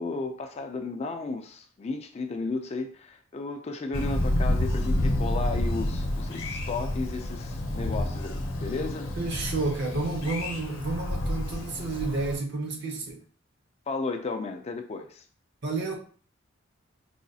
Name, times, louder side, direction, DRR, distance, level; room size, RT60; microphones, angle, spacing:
voice 1, 0.0-9.1 13.9-15.2, left 3 dB, 30° left, 0.3 m, -34 dB
Thunder, 3.9-12.4, left 1 dB, 65° left, 0.7 m, -29 dB
voice 2, 9.2-13.2 15.6-16.0, right 3 dB, 55° right, 0.8 m, -30 dB
4.8 x 2.3 x 2.7 m
head